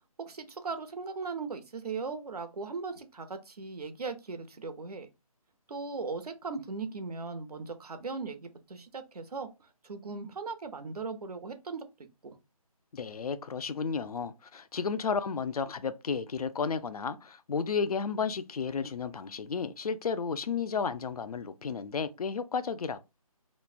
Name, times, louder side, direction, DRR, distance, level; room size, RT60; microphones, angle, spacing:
voice 1, 0.2-5.1 5.7-9.5 9.8-11.9 12.2-12.4, right 4 dB, 90° right, 0.7 m, -38 dB
voice 2, 12.9-23.0, left 5 dB, 80° left, 0.4 m, -33 dB
3.1 x 2.1 x 2.3 m
figure-of-eight pair, 175°, 19 cm